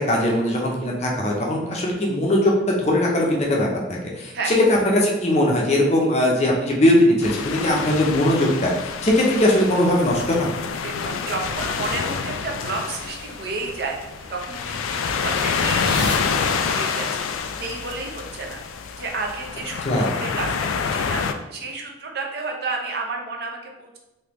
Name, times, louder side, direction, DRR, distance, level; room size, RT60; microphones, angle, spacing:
voice 1, 0.0-10.5 19.8-20.1, left 1 dB, 35° left, -1 dB, 0.6 m, -20 dB
sound 1, 7.2-21.3, left 6 dB, 90° left, 0.3 m, -27 dB
voice 2, 10.8-14.0 14.3-17.3 17.6-24.0, right 3 dB, 55° right, 1 dB, 0.5 m, -31 dB
sound 2, 12.7-16.2, right 1 dB, 25° right, 1.4 m, -37 dB
3.4 x 2.9 x 3.0 m, 0.99 s
head